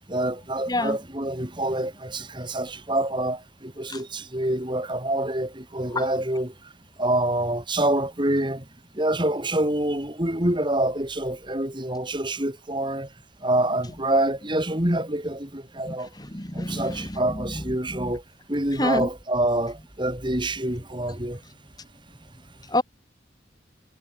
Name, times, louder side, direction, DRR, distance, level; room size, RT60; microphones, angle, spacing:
voice 1, 0.1-6.7 7.0-8.7 8.9-13.1 13.4-16.1 16.5-18.2 18.5-21.4, right 1 dB, 25° right, 4.1 m, -26 dB
voice 2, 16.3-17.1 17.9-18.0 18.8-19.1 22.7-22.8, left 1 dB, 20° left, 2.5 m, -26 dB
head